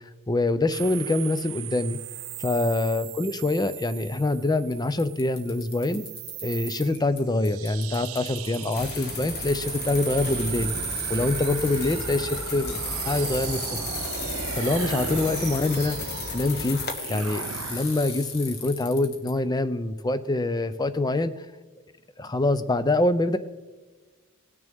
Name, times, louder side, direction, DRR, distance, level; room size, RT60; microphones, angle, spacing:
voice 1, 0.3-2.0 2.4-6.0 6.4-10.7 11.1-12.8 13.1-13.8 14.5-16.8 17.1-17.4 17.7-21.5 22.2-23.4, left 2 dB, 20° left, 13 dB, 0.5 m, -25 dB
sound 1, 0.7-18.3, right 13 dB, 75° right, 0.4 m, -37 dB
Bicycle, 3.7-3.8 4.7-4.8 5.0-7.2 7.4-19.3, left 6 dB, 80° left, 2.0 m, -39 dB
sound 2, 8.7-16.9, left 3 dB, 50° left, 1.3 m, -34 dB
19.0 x 6.7 x 3.5 m, 1.3 s
head